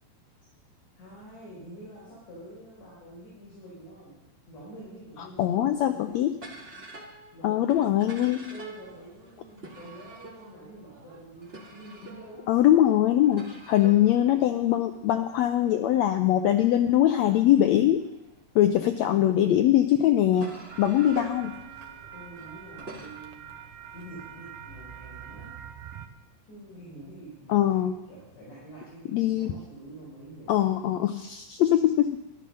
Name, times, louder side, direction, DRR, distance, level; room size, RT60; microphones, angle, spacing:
voice 1, 1.0-4.1 4.5-6.2 7.3-12.6 22.1-23.6 23.9-25.5 26.5-30.9, right 1 dB, 65° left, -7 dB, 5.8 m, -46 dB
voice 2, 5.4-6.3 7.4-8.5 12.5-18.0 18.5-20.5 20.8-21.5 27.5-27.9 29.1-29.6 30.5-32.2, left 12 dB, 90° left, 7 dB, 1.5 m, -22 dB
sound 1, 6.4-19.0 19.6-23.1, right 2 dB, 25° right, 1.4 m, -47 dB
sound 2, 20.7-26.1, right 9 dB, 85° right, 2.6 m, -44 dB
13.0 x 11.5 x 6.5 m, 0.92 s
omnidirectional pair, 3.8 m